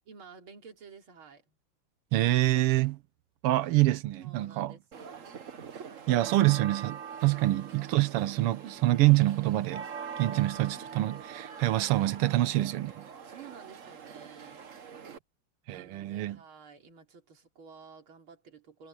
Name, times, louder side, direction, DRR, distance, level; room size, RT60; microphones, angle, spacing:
voice 1, 0.1-1.6 4.2-5.4 7.3-7.5 13.2-14.6 15.7-18.9, right 6 dB, 70° right, 3.8 m, -52 dB
voice 2, 2.1-3.0 3.4-4.8 6.1-9.9 10.2-13.1 15.7-16.4, right 17 dB, 90° right, 1.8 m, -26 dB
sound 1, 4.9-15.2, right 7 dB, 45° right, 1.3 m, -43 dB
omnidirectional pair, 2.4 m